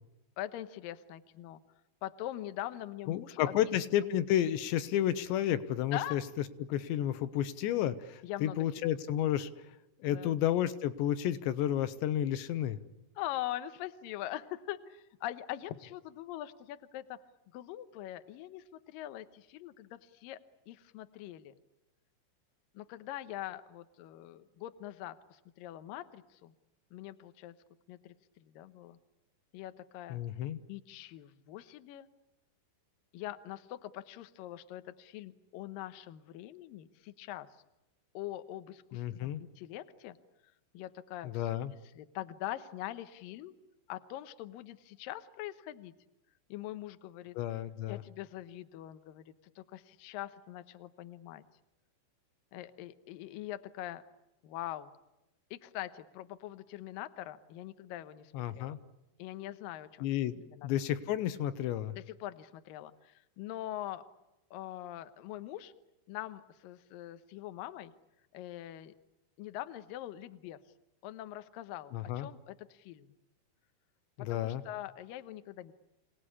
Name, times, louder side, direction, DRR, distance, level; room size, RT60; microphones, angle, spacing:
voice 1, 0.4-1.6 2.0-3.6 5.9-6.2 8.2-8.6 10.1-10.3 13.2-17.2 17.5-20.4 20.7-21.5 22.7-26.5 26.9-27.6 27.9-29.0 29.5-30.2 30.7-32.1 33.1-37.5 38.1-40.2 40.7-41.4 42.0-43.5 43.9-45.9 46.5-47.4 47.9-51.4 52.5-54.0 54.4-54.9 55.5-58.8 59.2-60.1 60.5-60.7 61.9-64.0 64.5-65.7 66.1-67.9 68.3-68.9 69.4-70.6 71.0-73.1 74.2-75.7, left 13 dB, 90° left, 11 dB, 1.9 m, -43 dB
voice 2, 3.1-6.2 6.7-9.5 10.0-12.8 30.1-30.6 38.9-39.4 41.2-41.7 47.4-48.0 58.3-58.8 60.0-61.9 71.9-72.3 74.2-74.6, left 11 dB, 70° left, 13 dB, 3.0 m, -31 dB
27.5 x 18.5 x 9.9 m, 0.94 s
omnidirectional pair, 5.8 m